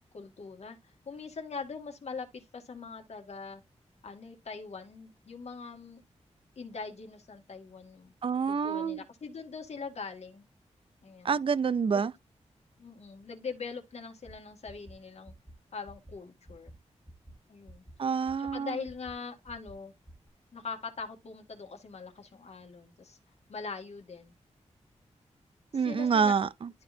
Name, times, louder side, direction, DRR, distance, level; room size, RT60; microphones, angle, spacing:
voice 1, 0.1-3.6 4.0-6.0 6.6-8.1 8.5-10.4 11.0-11.4 11.9-12.0 12.8-15.3 15.7-16.7 17.5-17.8 18.4-19.9 20.5-23.2 23.5-24.3 25.7-26.3, left 4 dB, 65° left, 1.9 m, -42 dB
voice 2, 8.2-9.0 11.2-12.1 18.0-18.7 25.7-26.7, right 6 dB, 50° right, 0.5 m, -27 dB
sound 1, 14.2-14.3 14.6-14.9 15.2-15.5 15.8-16.1 16.4-16.7 17.0-17.3 17.7-17.9 18.2-18.5 18.8-19.1 19.4-19.7 20.0-20.3, equal, 5° right, 1.5 m, -50 dB
12.5 x 4.1 x 2.7 m
wide cardioid pair, 115°, 12 cm